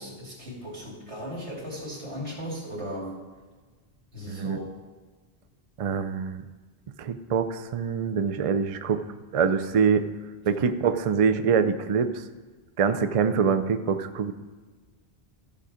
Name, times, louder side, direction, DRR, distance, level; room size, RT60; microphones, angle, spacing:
voice 1, 0.0-3.2 4.1-4.7, equal, 85° right, -4 dB, 3.2 m, -37 dB
voice 2, 4.3-4.6 5.8-6.4 7.0-9.0 9.3-10.0 10.4-12.2 12.8-14.3, right 6 dB, 50° right, 10 dB, 0.4 m, -24 dB
14.0 x 5.4 x 5.0 m, 1.4 s
omnidirectional pair, 1.1 m